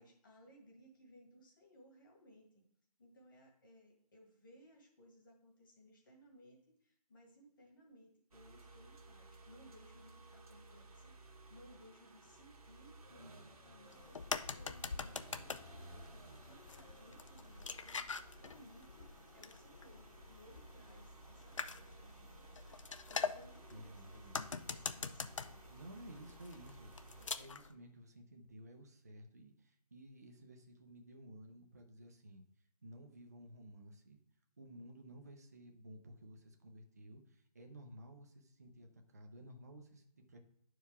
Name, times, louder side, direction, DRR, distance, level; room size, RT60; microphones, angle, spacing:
voice 1, 0.0-2.6 3.0-14.2 14.5-25.7, equal, 30° left, 0 dB, 1.7 m, -62 dB
sound 1, 8.3-27.3, right 2 dB, 60° right, 1.1 m, -58 dB
sound 2, 13.9-27.7, left 5 dB, 50° left, 0.4 m, -45 dB
voice 2, 23.7-24.4 25.7-32.4 32.8-34.2 34.6-40.4, right 1 dB, 25° right, 3 dB, 0.5 m, -55 dB
11.0 x 4.6 x 3.5 m, 0.70 s
hypercardioid pair, 175°, 21 cm